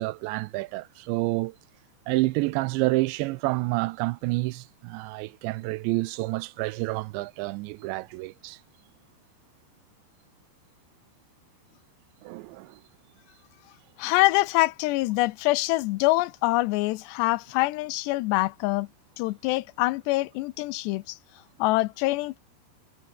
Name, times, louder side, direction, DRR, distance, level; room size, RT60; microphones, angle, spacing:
voice 1, 0.0-1.6 2.1-8.6 12.2-12.8, right 21 dB, 85° right, 2.8 m, -29 dB
voice 2, 14.0-18.9 19.2-21.2 21.6-22.4, left 19 dB, 80° left, 2.6 m, -25 dB
omnidirectional pair, 5.3 m